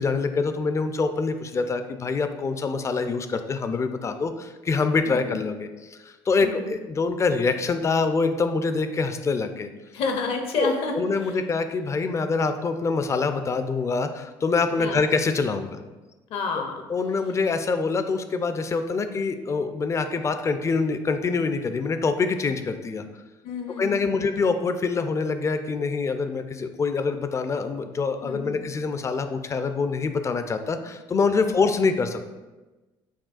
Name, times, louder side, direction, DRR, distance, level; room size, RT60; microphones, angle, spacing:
voice 1, 0.0-6.0 6.3-9.7 10.6-15.8 16.9-23.0 23.8-32.2, left 4 dB, 25° left, 8 dB, 0.3 m, -25 dB
voice 2, 5.1-5.4 6.4-6.7 9.9-10.9 11.2-11.4 14.8-15.0 16.3-16.9 23.4-24.2 28.2-28.6 31.4-31.5, left 4 dB, 60° left, 4 dB, 0.6 m, -30 dB
5.9 x 2.3 x 2.5 m, 1.2 s
hypercardioid pair, 70°, 11 cm